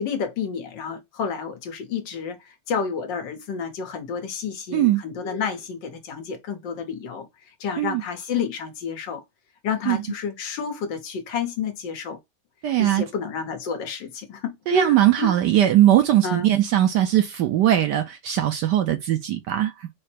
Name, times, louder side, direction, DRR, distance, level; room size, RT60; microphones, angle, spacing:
voice 1, 0.0-7.3 7.6-9.2 9.6-12.2 12.8-15.4 16.2-16.5, left 6 dB, 70° left, 1.6 m, -30 dB
voice 2, 12.6-13.0 14.7-19.9, right 12 dB, 75° right, 1.0 m, -20 dB
4.7 x 2.1 x 4.3 m
omnidirectional pair, 2.2 m